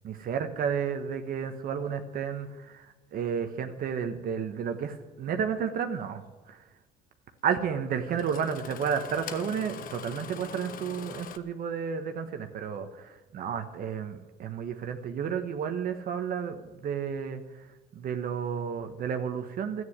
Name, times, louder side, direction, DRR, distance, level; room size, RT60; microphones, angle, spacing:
voice 1, 0.0-6.6 7.4-17.7 17.9-19.8, right 7 dB, 60° right, 7 dB, 1.2 m, -32 dB
Engine starting, 5.8-5.9 7.5-7.6 8.1-11.4, left 8 dB, 55° left, 1.0 m, -42 dB
13.0 x 9.5 x 9.5 m, 1.1 s
cardioid pair, 110°, 17 cm